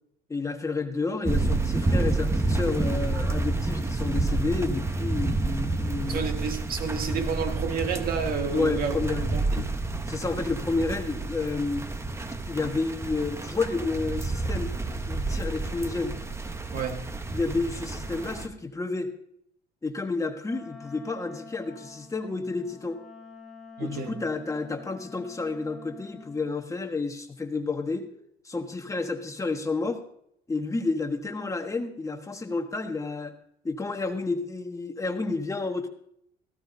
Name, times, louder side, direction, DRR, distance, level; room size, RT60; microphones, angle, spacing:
voice 1, 0.3-6.2 8.5-9.7 10.1-11.9 12.5-14.7 15.1-16.1 17.3-19.1 19.8-23.0 23.8-28.1 28.4-30.0 30.5-33.3 33.6-35.9, left 3 dB, 20° left, 5 dB, 1.3 m, -30 dB
sound 1, 1.2-18.5, right 2 dB, 15° right, 0.9 m, -29 dB
voice 2, 6.1-8.9 9.3-9.7 16.7-17.0 23.8-24.1, right 6 dB, 60° right, 6 dB, 1.7 m, -30 dB
Wind instrument woodwind instrument, 20.4-26.5, left 4 dB, ahead, 3.0 m, -47 dB
17.5 x 15.0 x 2.7 m, 0.70 s
cardioid pair, 110°, 17 cm